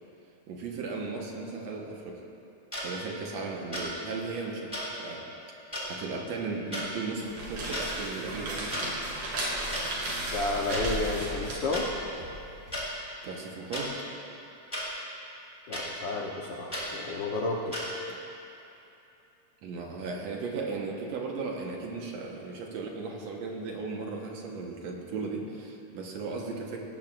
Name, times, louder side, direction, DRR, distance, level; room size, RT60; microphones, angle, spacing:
voice 1, 0.5-2.2 2.8-5.3 5.9-8.8 13.2-14.0 18.1-18.2 19.6-26.8, right 4 dB, 65° right, 0 dB, 2.3 m, -36 dB
sound 1, 2.7-2.8 3.7-3.9 4.7-4.8 5.7-5.8 6.7-6.9 7.6-7.9 8.7-8.8 9.7-9.8 10.7-10.8 11.7-11.8 12.7-12.8 13.7-13.9 14.7-14.9 15.7-15.8 16.7-16.9 17.7-17.8, left 1 dB, 10° left, 2.8 m, -34 dB
sound 2, 7.1-12.8, right 1 dB, 90° right, 4.5 m, -35 dB
voice 2, 10.3-11.9 15.7-17.9, left 2 dB, 75° left, -2 dB, 1.0 m, -31 dB
19.0 x 16.5 x 2.5 m, 2.8 s
omnidirectional pair, 3.5 m